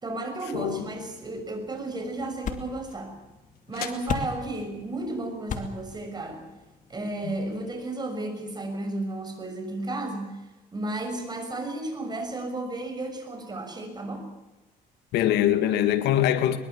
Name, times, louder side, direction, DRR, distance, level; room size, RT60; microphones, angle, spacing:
voice 1, 0.0-3.1 3.7-6.4 6.9-10.3 10.7-14.3, right 2 dB, 25° right, 6.4 m, -33 dB
voice 2, 0.5-0.9 7.2-7.3 15.1-16.6, left 11 dB, 85° left, 1.9 m, -23 dB
sound 1, 0.8-7.8, left 6 dB, 50° left, 2.6 m, -39 dB
sound 2, 2.1-7.0, left 9 dB, 65° left, 2.7 m, -47 dB
22.5 x 22.0 x 7.2 m
cardioid pair, 110°, 17 cm